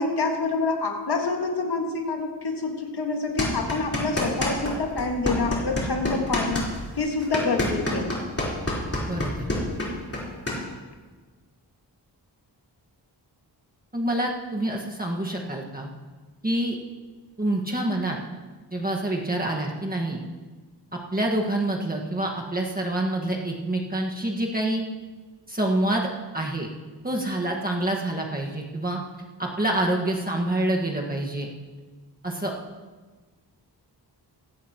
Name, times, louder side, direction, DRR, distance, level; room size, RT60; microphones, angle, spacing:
voice 1, 0.0-6.6 7.0-8.1, left 3 dB, 65° left, 1 dB, 1.8 m, -27 dB
sound 1, 3.4-4.7 5.0-10.6, left 1 dB, 35° left, 3.9 m, -27 dB
voice 2, 9.0-9.5 13.9-15.9 16.4-16.7 17.4-18.2 18.7-20.2 20.9-24.8 25.5-26.1 26.3-26.7 27.0-29.0 29.4-31.5 32.2-32.5, right 1 dB, 20° right, -1 dB, 1.6 m, -27 dB
16.0 x 16.0 x 3.0 m, 1.4 s
wide cardioid pair, 105°, 42 cm